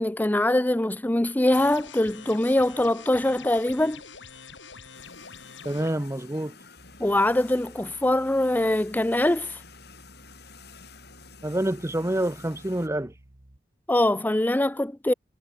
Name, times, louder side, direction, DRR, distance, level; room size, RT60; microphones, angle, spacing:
voice 1, 0.0-4.0 7.0-9.6 13.9-15.1, left 1 dB, 10° left, 0.5 m, -23 dB
sound 1, 1.5-5.9, left 5 dB, 85° left, 6.3 m, -45 dB
sound 2, 4.9-12.9, left 5 dB, 60° left, 6.7 m, -50 dB
voice 2, 5.6-6.6 11.4-13.1, right 1 dB, 15° right, 0.9 m, -27 dB
sound 3, 6.8-13.6, right 1 dB, 50° right, 2.4 m, -54 dB
head